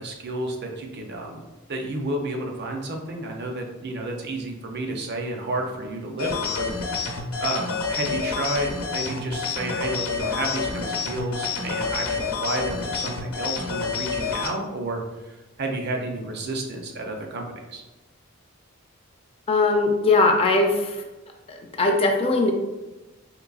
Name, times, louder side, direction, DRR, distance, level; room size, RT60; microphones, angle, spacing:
voice 1, 0.0-1.4 1.7-6.7 7.4-17.8, right 2 dB, 50° right, 2 dB, 0.5 m, -31 dB
sound 1, 6.2-14.5, left 5 dB, 80° left, 0.7 m, -28 dB
voice 2, 19.5-21.0 21.5-22.5, left 3 dB, 25° left, 2 dB, 0.3 m, -20 dB
3.8 x 3.0 x 2.3 m, 1.1 s
head